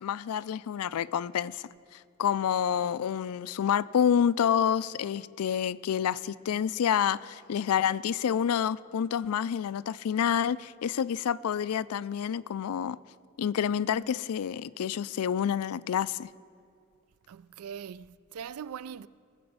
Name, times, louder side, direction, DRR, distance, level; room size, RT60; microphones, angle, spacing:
voice 1, 0.0-1.6 2.2-13.0 13.4-16.3, left 8 dB, 85° left, 0.4 m, -28 dB
voice 2, 17.3-19.1, right 7 dB, 85° right, 0.4 m, -41 dB
19.0 x 6.9 x 7.8 m
head